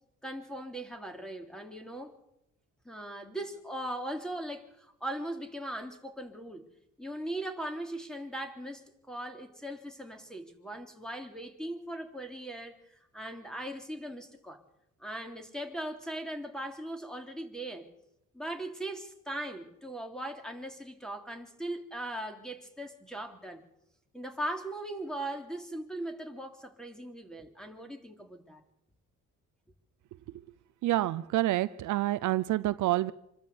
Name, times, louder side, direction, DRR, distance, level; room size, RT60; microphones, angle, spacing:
voice 1, 0.2-2.1 2.8-6.6 7.0-14.6 15.0-17.9 18.3-23.6 24.1-28.6, right 1 dB, ahead, 4 dB, 3.2 m, -39 dB
voice 2, 30.8-33.1, right 15 dB, 75° right, 14 dB, 0.7 m, -28 dB
26.0 x 13.0 x 8.1 m, 0.83 s
cardioid pair, 90°, 30 cm